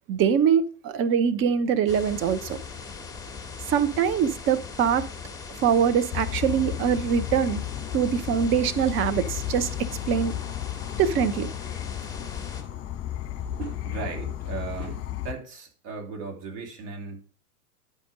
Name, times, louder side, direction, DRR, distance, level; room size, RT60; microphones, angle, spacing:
voice 1, 0.1-2.6 3.7-5.0 5.6-7.6 7.9-9.7 10.1-10.3 11.0-11.5, right 8 dB, 25° right, 0.8 m, -23 dB
sound 1, 1.9-12.6, left 5 dB, 10° left, 1.7 m, -39 dB
Insect / Frog, 6.1-15.3, left 12 dB, 30° left, 1.7 m, -34 dB
voice 2, 13.6-17.2, right 5 dB, 50° right, 3.1 m, -37 dB
10.5 x 5.1 x 4.9 m
hypercardioid pair, 100°, 45 cm